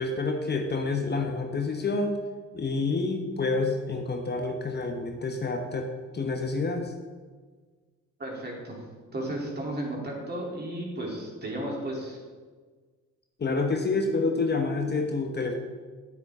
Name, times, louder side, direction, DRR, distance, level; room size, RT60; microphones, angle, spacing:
voice 1, 0.0-2.1 2.5-5.9 6.1-6.9 13.4-15.5, left 3 dB, 35° left, 3 dB, 1.0 m, -28 dB
voice 2, 8.2-8.8 9.1-12.2, right 1 dB, 35° right, -2 dB, 3.1 m, -34 dB
9.7 x 8.5 x 3.7 m, 1.5 s
cardioid pair, 90°, 30 cm